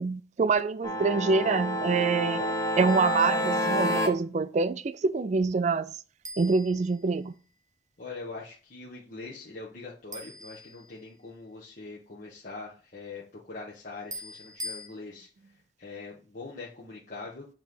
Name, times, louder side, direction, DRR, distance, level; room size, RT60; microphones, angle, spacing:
voice 1, 0.0-2.5 2.8-5.9 6.4-7.3, right 4 dB, 40° right, 0.4 m, -26 dB
sound 1, 0.8-4.1, equal, 20° left, 1.1 m, -28 dB
sound 2, 2.9-3.3 6.2-7.6 10.1-11.4 14.1-14.9, left 1 dB, 20° right, 1.1 m, -43 dB
voice 2, 8.0-15.3 15.8-17.5, left 3 dB, 45° left, 1.2 m, -42 dB
7.3 x 3.2 x 5.4 m
head